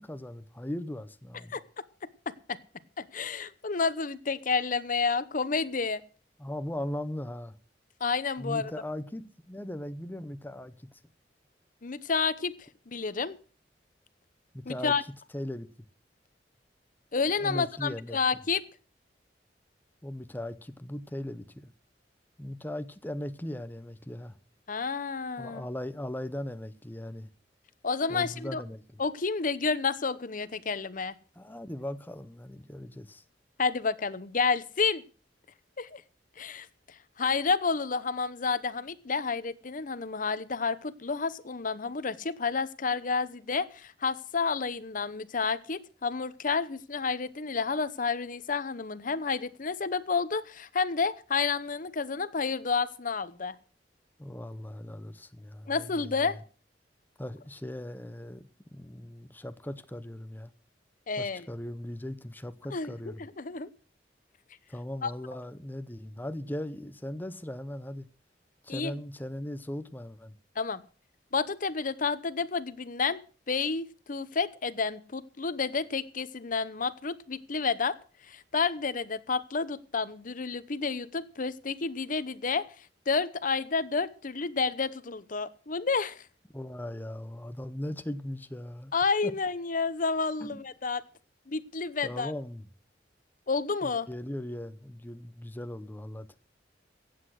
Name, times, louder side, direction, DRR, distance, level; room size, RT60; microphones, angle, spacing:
voice 1, 0.0-1.6 6.4-7.6 8.4-11.0 14.5-14.9 15.3-15.7 17.3-18.2 20.0-21.7 22.4-24.4 25.4-27.3 28.1-29.0 31.4-33.2 54.2-56.4 57.2-58.4 58.7-60.5 61.2-63.3 64.7-68.1 68.6-70.4 86.5-88.9 89.2-89.3 90.4-90.6 92.0-92.7 93.8-96.4, left 1 dB, 10° left, 0.7 m, -38 dB
voice 2, 3.0-6.0 8.0-8.7 11.8-13.4 14.7-15.0 17.1-18.6 24.7-25.6 27.8-28.6 29.0-31.2 33.6-35.0 35.8-36.0 36.4-53.5 55.7-56.4 61.1-61.5 62.7-62.9 63.2-63.7 65.0-65.1 68.7-68.9 70.6-70.8 71.3-73.2 73.5-77.9 78.2-86.2 88.9-91.0 91.5-92.3 93.5-94.1, left 4 dB, 50° left, 0.8 m, -30 dB
15.5 x 8.6 x 6.3 m
head